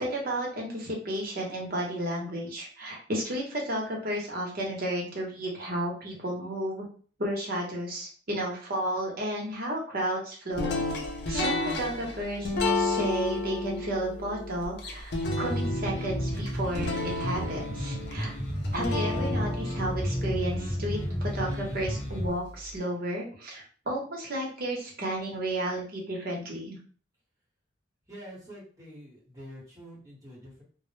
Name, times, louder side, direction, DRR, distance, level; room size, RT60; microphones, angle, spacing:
voice 1, 0.0-6.8 7.2-10.8 11.3-18.3 18.7-26.8, right 1 dB, 55° right, -1 dB, 0.8 m, -32 dB
sound 1, 10.6-21.6, left 2 dB, 60° left, 0.5 m, -32 dB
sound 2, 15.2-22.3, equal, 5° left, 0.9 m, -32 dB
voice 2, 28.1-30.6, equal, 20° right, -4 dB, 1.0 m, -46 dB
2.0 x 2.0 x 3.0 m, 0.42 s
head